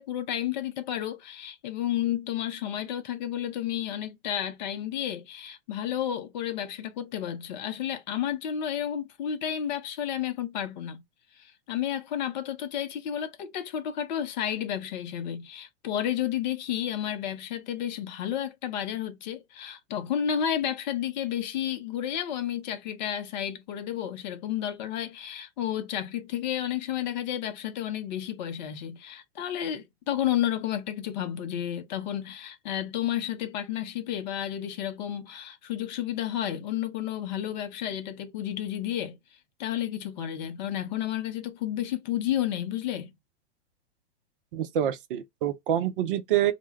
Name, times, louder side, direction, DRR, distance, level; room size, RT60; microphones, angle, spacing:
voice 1, 0.0-11.0 11.3-39.2 39.6-43.1, left 10 dB, 40° left, 0.5 m, -31 dB
voice 2, 44.5-46.5, right 11 dB, 50° right, 0.5 m, -26 dB
2.2 x 2.1 x 3.1 m
figure-of-eight pair, 110°, 36 cm